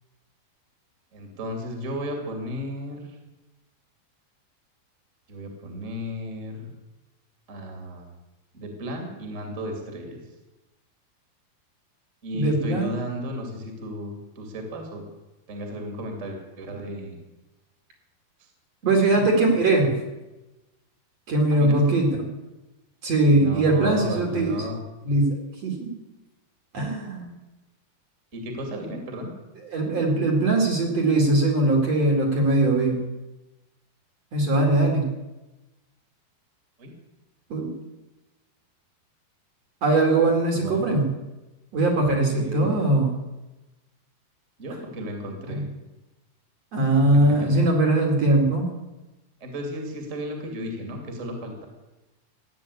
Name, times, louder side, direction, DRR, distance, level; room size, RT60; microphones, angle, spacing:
voice 1, 1.1-3.2 5.3-6.7 7.5-8.1 8.5-10.2 12.2-15.0 15.5-17.2 18.4-18.5 19.0-19.2 21.5-22.0 23.3-24.8 28.3-29.3 36.8-36.9 40.5-40.9 42.3-42.7 44.6-45.7 46.9-47.6 49.4-51.6, equal, 20° right, 3 dB, 2.5 m, -34 dB
voice 2, 12.3-12.9 18.9-20.0 21.3-22.1 23.0-24.6 25.1-25.3 25.6-25.9 26.7-27.3 29.7-33.0 34.3-35.0 37.5-37.7 39.8-41.0 41.7-43.1 45.5-45.6 46.7-48.6, right 2 dB, 45° right, 1 dB, 3.2 m, -21 dB
15.5 x 9.7 x 8.5 m, 1.0 s
omnidirectional pair, 4.6 m